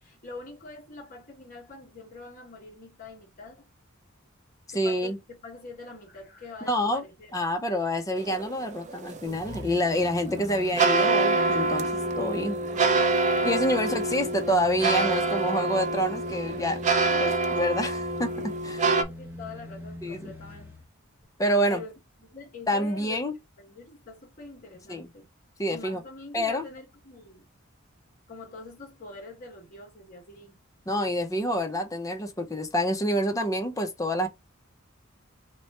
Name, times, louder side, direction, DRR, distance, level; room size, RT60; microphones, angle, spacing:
voice 1, 0.0-3.7 4.7-7.4 14.0-14.1 17.1-17.2 18.8-20.7 21.7-23.3 23.6-25.3 25.7-27.4 28.0-30.6, left 3 dB, 45° left, 1.5 m, -45 dB
voice 2, 4.7-5.2 6.7-7.0 7.3-11.9 12.2-12.6 13.4-16.8 17.2-18.8 20.0-20.3 21.4-21.8 22.7-23.3 24.9-25.1 25.6-26.0 26.3-26.6 30.9-34.3, equal, 15° left, 0.6 m, -27 dB
sound 1, 8.2-19.0, right 3 dB, 35° right, 0.5 m, -26 dB
sound 2, 9.3-20.9 21.2-21.3, left 1 dB, 10° right, 0.9 m, -41 dB
3.0 x 2.2 x 4.2 m
head